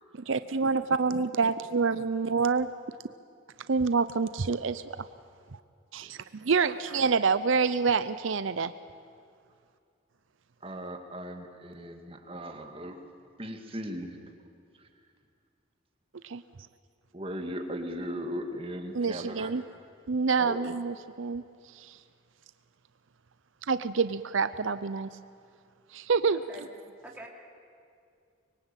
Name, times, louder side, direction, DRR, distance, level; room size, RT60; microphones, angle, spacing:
voice 1, 0.3-2.7 3.7-4.8 5.9-8.7 16.2-16.4 18.9-19.6 20.1-21.4 21.7-22.0 23.7-25.1 25.9-26.4, right 5 dB, 75° right, 13 dB, 0.6 m, -27 dB
voice 2, 10.6-13.0 13.4-14.5 14.7-14.9 17.1-19.5 20.4-20.6, equal, 25° right, 5 dB, 2.1 m, -38 dB
voice 3, 26.3-26.6 27.0-27.3, right 1 dB, 10° right, -1 dB, 3.1 m, -45 dB
24.5 x 22.5 x 9.1 m, 2.3 s
head